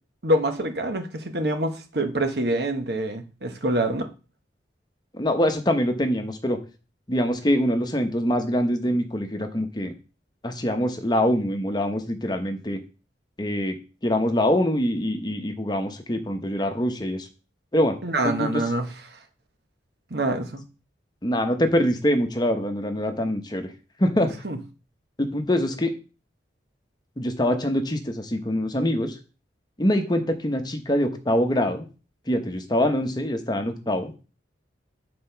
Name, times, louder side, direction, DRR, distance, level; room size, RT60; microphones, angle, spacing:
voice 1, 0.2-4.1 18.0-19.2 20.1-20.6 24.4-24.6, right 1 dB, 60° right, 1.1 m, -26 dB
voice 2, 5.1-6.6 7.1-9.9 10.4-12.8 13.4-13.8 14.0-17.3 17.7-18.0 18.2-18.6 21.2-23.7 24.0-24.3 25.2-25.9 27.2-29.2 29.8-31.9 32.3-34.1, equal, 20° left, 0.9 m, -24 dB
8.6 x 4.3 x 5.7 m
head